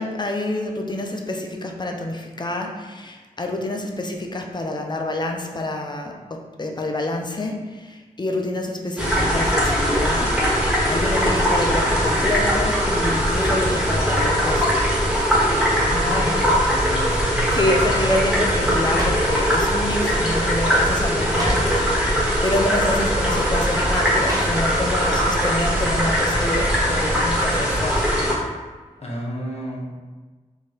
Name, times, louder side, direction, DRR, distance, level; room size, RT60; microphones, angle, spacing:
voice 1, 0.0-10.4 10.9-14.8 15.9-16.6 17.5-28.1, left 1 dB, 30° left, 2 dB, 0.6 m, -27 dB
sound 1, 9.0-28.3, equal, 5° right, 1.4 m, -20 dB
voice 2, 15.8-17.7 29.0-30.0, equal, 50° left, -4 dB, 1.1 m, -33 dB
sound 2, 16.6-17.0 17.5-17.8 18.6-19.4 20.2-20.5 20.8-20.9 21.2-21.8 22.7-22.9 24.2-25.0 25.4-25.5, equal, 25° right, 1.4 m, -31 dB
3.9 x 2.5 x 3.6 m, 1.3 s
cardioid pair, 45°, 14 cm